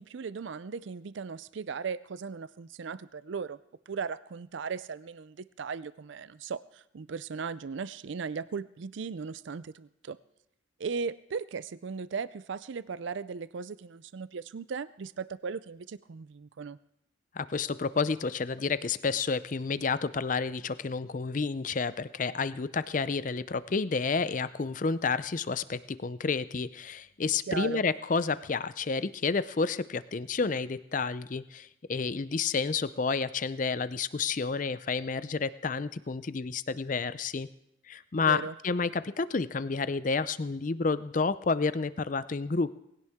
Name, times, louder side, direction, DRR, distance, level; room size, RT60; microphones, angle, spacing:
voice 1, 0.0-3.6 3.9-10.2 10.8-16.8 27.5-27.8 38.2-38.5, right 5 dB, 70° right, 16 dB, 0.4 m, -37 dB
voice 2, 17.3-37.5 37.9-42.8, left 4 dB, 40° left, 15 dB, 0.5 m, -30 dB
19.5 x 17.0 x 3.6 m, 0.81 s
head